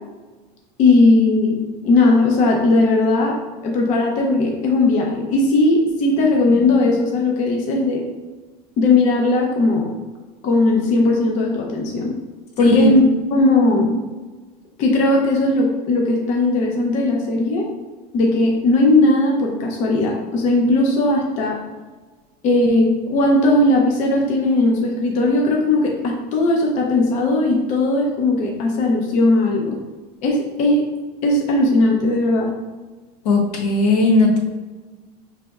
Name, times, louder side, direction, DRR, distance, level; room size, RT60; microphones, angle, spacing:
voice 1, 0.8-8.1 8.8-9.9 10.4-12.1 12.6-13.0 13.3-13.9 14.8-17.7 18.1-21.6 22.4-29.8 30.2-30.9 31.2-32.5, left 2 dB, 40° left, 0 dB, 0.5 m, -18 dB
voice 2, 12.6-12.9 33.2-34.4, left 2 dB, 80° left, -1 dB, 1.1 m, -16 dB
5.0 x 3.3 x 2.3 m, 1.3 s
supercardioid pair, 155°, 20 cm